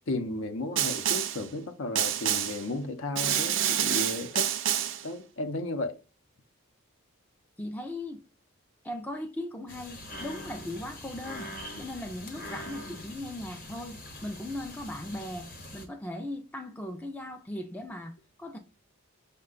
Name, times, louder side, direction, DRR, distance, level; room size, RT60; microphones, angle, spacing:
voice 1, 0.1-4.5 5.0-5.9, left 2 dB, 65° left, 0.6 m, -34 dB
Snare drum, 0.8-1.5 2.0-2.7 3.2-5.1, right 10 dB, 55° right, 0.4 m, -28 dB
voice 2, 7.6-8.2 8.8-11.5 11.8-18.6, left 1 dB, 5° left, 0.3 m, -38 dB
sound 1, 9.7-15.9, left 1 dB, 40° left, 0.9 m, -43 dB
5.5 x 2.2 x 3.7 m
head